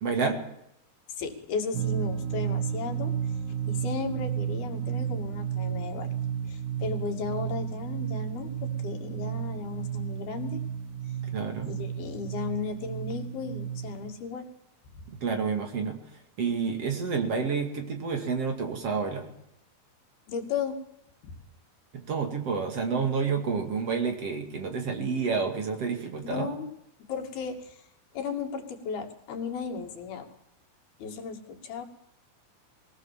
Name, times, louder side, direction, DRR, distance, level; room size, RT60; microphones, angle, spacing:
voice 1, 0.0-0.4 11.3-11.7 15.1-16.0 16.4-19.3 21.9-26.5, right 5 dB, 45° right, 5 dB, 3.0 m, -29 dB
voice 2, 1.2-3.1 3.7-6.1 6.4-10.6 11.6-14.5 14.9-15.0 20.3-20.8 26.2-26.7 27.1-27.8 28.1-30.3 31.0-31.8, left 5 dB, 90° left, 3 dB, 4.3 m, -35 dB
sound 1, 1.7-14.1, right 9 dB, 60° right, 2.5 m, -32 dB
22.5 x 17.5 x 7.5 m, 0.78 s
omnidirectional pair, 4.3 m